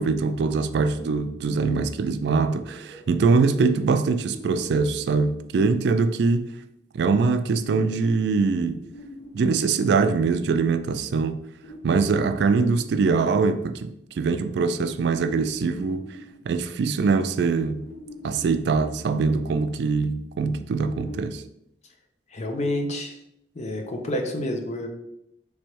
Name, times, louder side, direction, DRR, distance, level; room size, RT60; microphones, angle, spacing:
voice 1, 0.0-6.5 6.9-8.9 9.3-11.4 11.8-16.0 16.5-17.9 18.2-21.4, right 4 dB, 65° right, 0.3 m, -23 dB
sound 1, 2.7-6.3 7.6-10.9 11.6-13.7 15.1-17.2 17.7-19.8 20.8-21.3, left 1 dB, 65° left, 0.9 m, -45 dB
voice 2, 22.3-23.1 23.6-24.9, left 1 dB, 40° left, 0.6 m, -28 dB
3.4 x 3.2 x 4.4 m
head